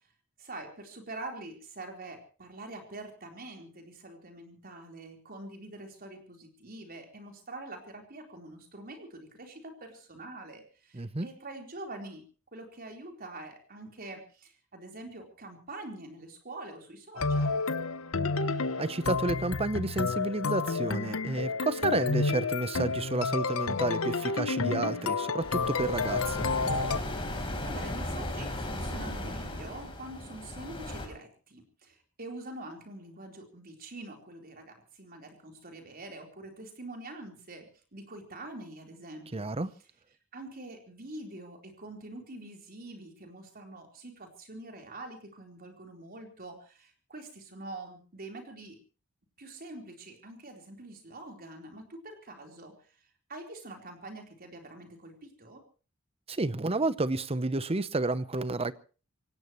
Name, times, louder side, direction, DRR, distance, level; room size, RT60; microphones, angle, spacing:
voice 1, 0.4-12.2 12.5-17.6 27.3-37.7 37.9-39.5 40.3-48.8 49.4-52.9 53.3-55.6, right 2 dB, 45° right, 3 dB, 4.2 m, -45 dB
voice 2, 10.9-11.3 18.8-26.5 39.3-39.7 56.3-58.7, right 2 dB, 30° right, 15 dB, 0.8 m, -31 dB
sound 1, 17.2-27.0, left 4 dB, 70° left, 0.9 m, -30 dB
sound 2, 25.4-31.1, left 1 dB, 25° left, 4.2 m, -36 dB
25.0 x 17.5 x 3.1 m, 0.35 s
head